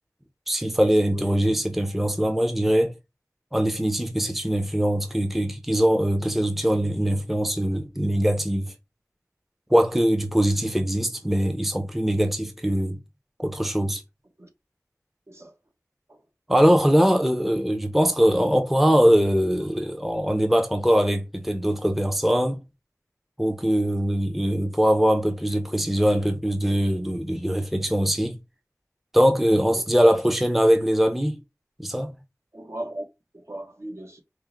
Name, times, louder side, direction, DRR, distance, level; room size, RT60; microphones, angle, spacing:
voice 1, 0.5-2.9 3.5-8.7 9.7-13.0 13.4-14.0 16.5-22.6 23.4-28.4 29.1-31.4 31.8-32.1, equal, 5° right, 0.6 m, -22 dB
voice 2, 32.5-33.0 33.3-34.2, right 1 dB, 50° right, 0.8 m, -37 dB
4.5 x 2.1 x 3.8 m
wide cardioid pair, 50°, 6 cm